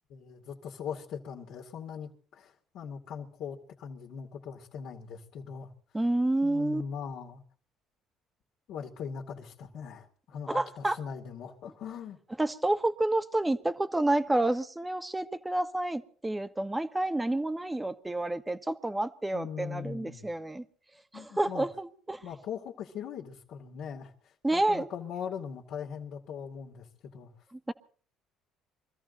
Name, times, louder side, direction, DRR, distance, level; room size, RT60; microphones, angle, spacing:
voice 1, 0.1-5.7 6.4-7.4 8.7-12.2 19.3-20.3 21.1-21.6 22.2-24.1 24.5-26.9 27.1-27.3, left 7 dB, 70° left, 0 dB, 2.3 m, -40 dB
voice 2, 5.9-6.8 10.5-11.0 12.4-20.6 21.1-22.2 24.4-24.9 27.5-27.7, right 2 dB, 15° right, 11 dB, 1.4 m, -29 dB
24.0 x 14.0 x 4.0 m, 0.42 s
supercardioid pair, 70°, 0 cm